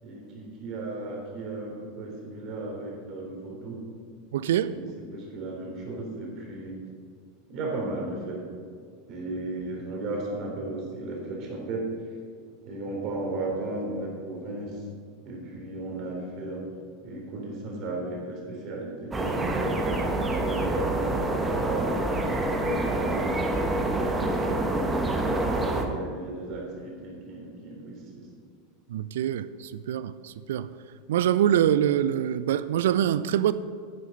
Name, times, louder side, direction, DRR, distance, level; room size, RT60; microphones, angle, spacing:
voice 1, 0.0-3.8 4.7-6.8 7.5-8.4 9.1-11.9 12.7-14.8 15.2-16.7 17.0-20.0 20.3-22.0 22.5-25.1 25.5-28.3, right 2 dB, 40° right, 3.5 m, -35 dB
voice 2, 4.3-4.8 28.9-30.7 31.1-33.5, right 10 dB, 60° right, 0.4 m, -24 dB
sound 1, 19.1-25.9, right 2 dB, 15° right, 1.3 m, -27 dB
10.5 x 10.0 x 5.3 m
figure-of-eight pair, 85°, 0 cm